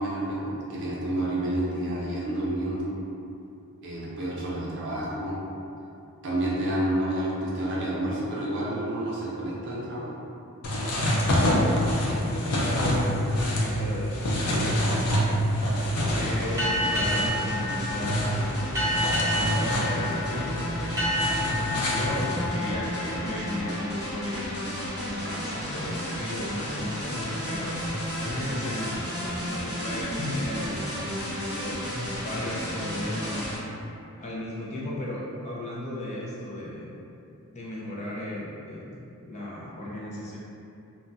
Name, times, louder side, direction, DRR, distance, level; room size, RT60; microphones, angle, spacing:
voice 1, 0.0-2.9 3.8-5.4 6.2-10.2, right 1 dB, 55° right, -6 dB, 0.6 m, -29 dB
sound 1, 10.6-22.5, equal, 85° left, 0.5 m, -27 dB
voice 2, 12.0-14.5 16.1-18.6 18.8-21.0 21.8-24.6 25.0-27.8 28.2-30.8 31.5-33.5 34.2-36.9 37.5-40.4, left 1 dB, 30° left, -6 dB, 0.4 m, -35 dB
sound 2, 16.0-33.6, equal, 50° left, 0.9 m, -33 dB
sound 3, 16.6-23.9, left 1 dB, 15° right, 0.6 m, -30 dB
2.2 x 2.1 x 3.8 m, 2.7 s
head